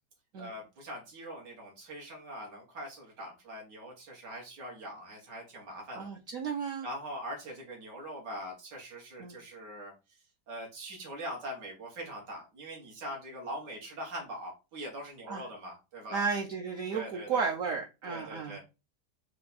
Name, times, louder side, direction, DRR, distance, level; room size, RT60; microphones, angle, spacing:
voice 1, 0.4-6.1 6.8-16.2 16.9-17.5 18.0-18.6, equal, 85° right, -2 dB, 2.1 m, -42 dB
voice 2, 6.0-6.9 9.2-9.4 15.3-15.4 16.1-18.6, right 5 dB, 65° right, 1 dB, 0.9 m, -33 dB
4.4 x 2.3 x 4.1 m, 0.28 s
omnidirectional pair, 1.8 m